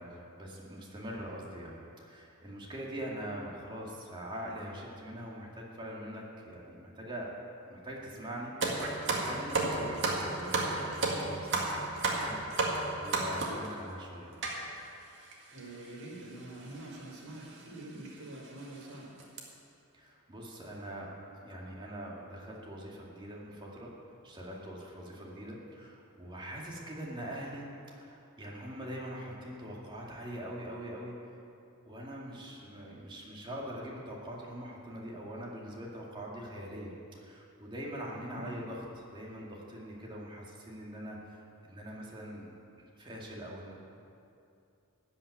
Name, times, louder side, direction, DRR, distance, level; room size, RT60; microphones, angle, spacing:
voice 1, 0.0-7.3 7.7-8.5 9.0-14.3 19.9-21.1 21.4-23.9 24.2-31.1 31.8-42.5 43.0-43.7, equal, 20° right, -3 dB, 2.2 m, -43 dB
sound 1, 8.6-13.7 14.4-14.6 15.3-15.4 15.6-15.8 16.7-16.9 17.4-17.5 18.1-18.2 18.6-18.8 19.2-19.4, right 3 dB, 55° right, 1.9 m, -31 dB
voice 2, 15.5-19.1 38.3-38.6, right 2 dB, 70° right, -3 dB, 3.9 m, -45 dB
14.5 x 5.8 x 9.7 m, 2.6 s
head